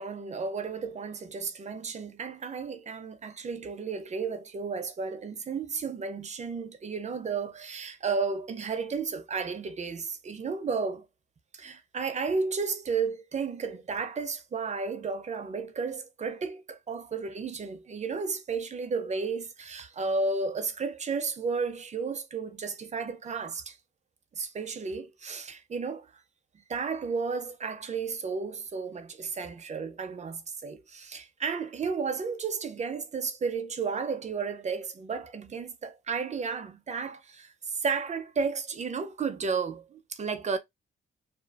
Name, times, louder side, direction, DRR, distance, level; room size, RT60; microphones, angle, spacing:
voice 1, 0.0-11.1 11.5-23.8 24.4-26.2 26.7-40.6, right 5 dB, 35° right, 0.5 m, -33 dB
2.5 x 2.4 x 2.3 m
cardioid pair, 115°, 20 cm